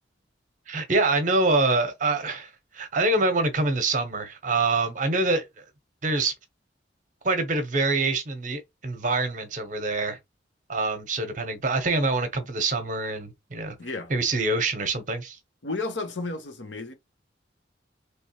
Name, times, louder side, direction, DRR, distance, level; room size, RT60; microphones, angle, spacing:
voice 1, 0.7-5.4 6.0-6.3 7.2-10.2 10.7-13.8 14.1-15.4, right 3 dB, 45° right, 0.9 m, -25 dB
voice 2, 13.8-14.1 15.6-16.9, left 3 dB, 80° left, 0.8 m, -32 dB
3.4 x 3.1 x 2.9 m
head